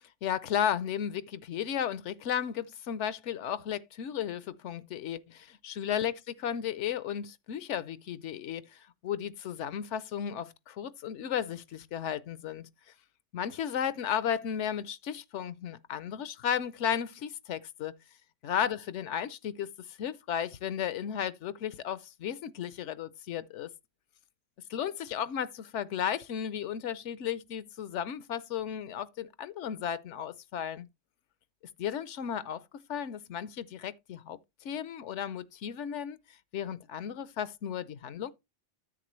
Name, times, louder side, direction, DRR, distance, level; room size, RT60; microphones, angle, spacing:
voice 1, 0.2-12.7 13.3-17.9 18.4-23.7 24.7-30.9 31.8-32.6 32.9-36.2 36.5-38.3, left 9 dB, 75° left, 0.9 m, -34 dB
10.0 x 7.7 x 3.1 m
omnidirectional pair, 1.2 m